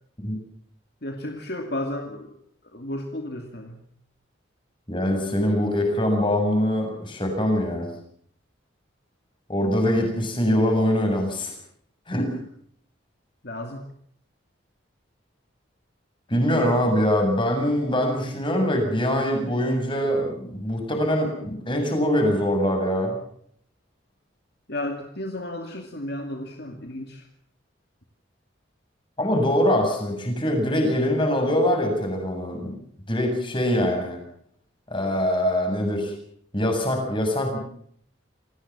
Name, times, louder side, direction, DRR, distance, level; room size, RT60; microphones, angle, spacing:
voice 1, 1.0-2.3 2.6-3.8 13.4-13.9 24.7-27.3, left 1 dB, 55° left, 4 dB, 2.6 m, -33 dB
voice 2, 4.9-7.9 9.5-11.5 12.1-12.3 16.3-23.2 29.2-32.7 33.1-34.2 34.9-36.1 36.5-37.6, equal, 25° left, 3 dB, 7.6 m, -23 dB
28.0 x 18.0 x 7.4 m, 0.66 s
head